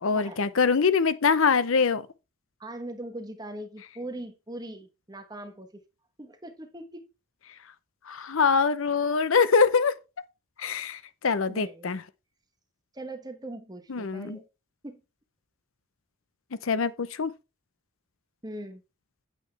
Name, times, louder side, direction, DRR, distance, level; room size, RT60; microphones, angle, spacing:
voice 1, 0.0-2.1 8.1-10.0 10.6-12.0 13.9-14.4 16.6-17.3, left 5 dB, 70° left, 0.7 m, -24 dB
voice 2, 2.6-5.8 6.2-7.1 11.5-12.0 12.9-14.4 14.8-15.0 18.4-18.8, right 1 dB, 20° right, 1.1 m, -40 dB
8.7 x 8.2 x 3.3 m
head